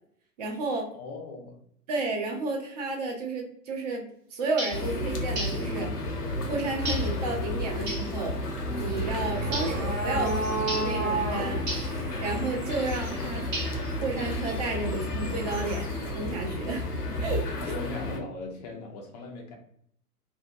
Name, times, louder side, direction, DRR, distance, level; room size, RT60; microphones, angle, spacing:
voice 1, 0.4-0.9 1.9-4.1 4.3-5.9 6.5-8.3 8.8-11.6 12.2-13.4 14.0-16.9 17.2-17.4, right 3 dB, 30° right, 1 dB, 0.4 m, -32 dB
voice 2, 0.9-1.6 17.6-19.6, left 3 dB, 30° left, 2 dB, 0.4 m, -39 dB
sound 1, 4.6-4.9 5.4-5.7 6.9-7.2 7.9-8.1 9.5-9.8 10.7-11.0 11.7-12.0 13.5-13.9, right 1 dB, 80° right, 1.0 m, -34 dB
sound 2, 4.7-18.2, left 1 dB, 75° left, 0.8 m, -32 dB
sound 3, 6.0-16.4, right 3 dB, 55° right, 1.1 m, -36 dB
2.6 x 2.1 x 2.5 m, 0.68 s
figure-of-eight pair, 110°, 46 cm